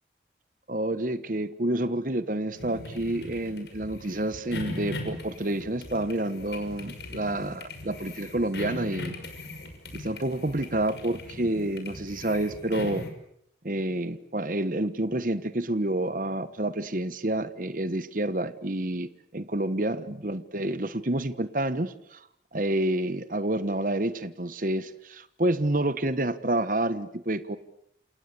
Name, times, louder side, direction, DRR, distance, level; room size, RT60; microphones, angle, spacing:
voice 1, 0.7-9.1 9.9-13.0 13.6-22.3 22.5-27.6, right 1 dB, 50° right, 12 dB, 1.3 m, -29 dB
sound 1, 2.6-13.1, left 1 dB, 75° left, 6.0 m, -39 dB
28.5 x 28.0 x 7.0 m, 0.71 s
head